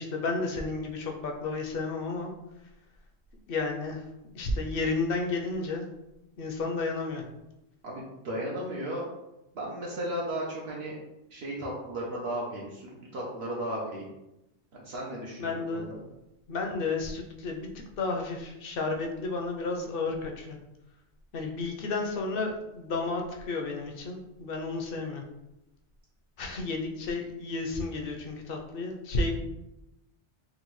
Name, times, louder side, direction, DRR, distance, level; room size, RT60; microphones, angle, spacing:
voice 1, 0.0-2.3 3.5-4.0 4.3-5.9 6.4-7.2 15.4-15.9 16.5-17.7 18.0-20.6 21.3-25.2 26.4-29.4, left 3 dB, 65° left, 2 dB, 0.7 m, -32 dB
voice 2, 7.8-9.1 9.5-10.9 11.3-14.1 14.7-16.0 21.4-21.5, right 1 dB, 70° right, -4 dB, 0.9 m, -35 dB
3.8 x 2.2 x 3.0 m, 0.92 s
omnidirectional pair, 1.1 m